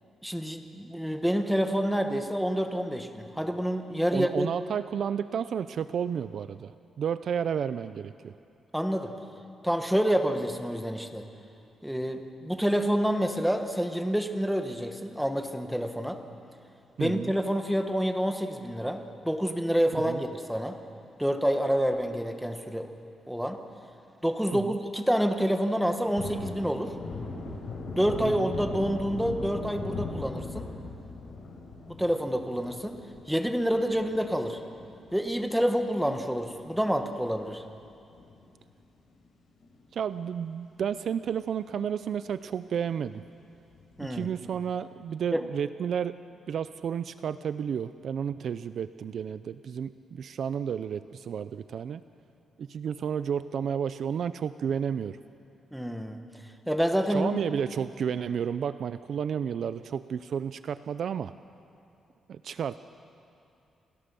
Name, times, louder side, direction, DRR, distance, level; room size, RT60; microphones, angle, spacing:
voice 1, 0.2-4.5 8.7-9.1 9.6-11.2 11.8-16.2 17.0-20.8 21.2-22.9 23.3-23.6 24.2-26.9 27.9-30.7 31.9-33.0 33.3-34.6 35.1-37.6 44.0-44.3 45.3-45.4 55.7-56.2 56.7-57.4, equal, ahead, 5 dB, 1.2 m, -28 dB
voice 2, 4.1-8.3 17.0-17.3 20.1-20.2 24.5-24.7 28.2-28.5 39.9-43.2 44.0-46.2 46.5-52.0 52.6-55.2 57.1-61.3 62.3-62.8, right 8 dB, 50° right, 13 dB, 0.4 m, -32 dB
Thunder, 25.8-36.5 36.9-37.0 37.3-38.8 39.1-39.3 39.6-40.4 40.8-40.9 41.3-41.4 43.7-44.3, left 3 dB, 65° left, 4.8 m, -40 dB
28.5 x 16.5 x 6.9 m, 2.7 s
wide cardioid pair, 175°, 0 cm